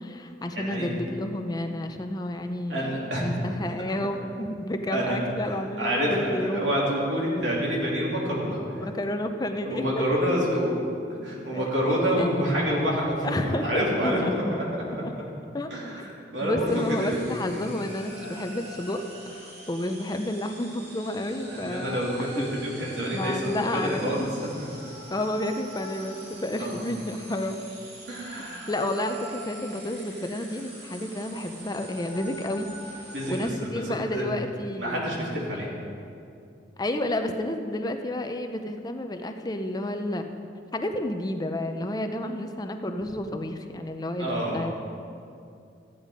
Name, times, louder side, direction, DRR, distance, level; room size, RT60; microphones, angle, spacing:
voice 1, 0.0-6.6 8.9-10.0 11.5-11.7 12.2-12.3 13.2-13.7 14.0-14.3 15.0-15.1 15.5-15.7 16.0-16.1 16.4-19.0 19.3-22.6 23.1-24.3 25.1-27.6 28.7-33.0 33.3-35.1 36.8-40.3 40.7-44.7, left 1 dB, 20° left, 6 dB, 0.6 m, -30 dB
voice 2, 0.5-0.9 2.7-3.2 4.9-8.9 9.6-10.7 11.2-14.4 15.7-16.0 16.3-17.2 17.5-17.6 18.2-18.3 21.5-24.7 26.6-26.8 28.1-28.7 33.1-34.3 34.8-35.7 44.2-44.7, equal, 90° right, -4 dB, 3.2 m, -28 dB
sound 1, 16.6-33.5, right 1 dB, 60° right, 2.6 m, -44 dB
14.0 x 9.1 x 5.1 m, 2.5 s
head